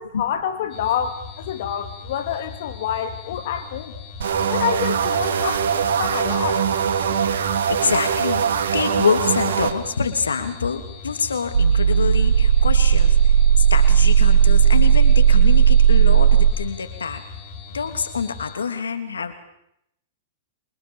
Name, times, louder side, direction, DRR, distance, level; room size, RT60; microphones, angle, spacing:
voice 1, 0.0-4.0 4.5-6.7, left 9 dB, 60° left, 8 dB, 2.3 m, -27 dB
sound 1, 0.7-18.6, left 5 dB, 30° left, 5.4 m, -39 dB
sound 2, 4.2-9.7, right 7 dB, 70° right, 2.7 m, -22 dB
voice 2, 7.5-17.2 17.7-19.4, left 5 dB, 85° left, 8 dB, 2.9 m, -26 dB
sound 3, 11.5-16.5, right 8 dB, 85° right, 1.5 m, -14 dB
28.0 x 23.5 x 7.2 m, 0.77 s
hypercardioid pair, 115°, 0 cm